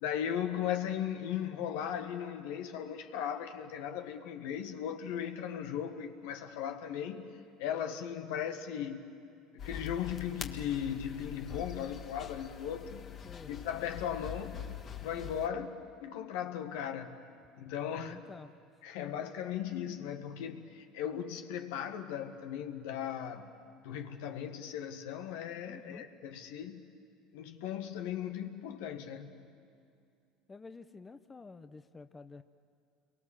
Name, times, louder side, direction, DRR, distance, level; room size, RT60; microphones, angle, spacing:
voice 1, 0.0-7.3 7.6-9.0 9.5-13.1 13.5-14.6 15.0-17.3 17.6-18.2 18.8-23.5 23.8-26.8 27.3-29.4, left 9 dB, 75° left, 1.7 m, -37 dB
sound 1, 9.6-15.5, left 9 dB, 45° left, 1.8 m, -44 dB
voice 2, 17.9-18.5 25.6-26.0 30.5-32.4, left 4 dB, 20° left, 0.9 m, -49 dB
29.0 x 23.0 x 7.3 m
hypercardioid pair, 85°, 0 cm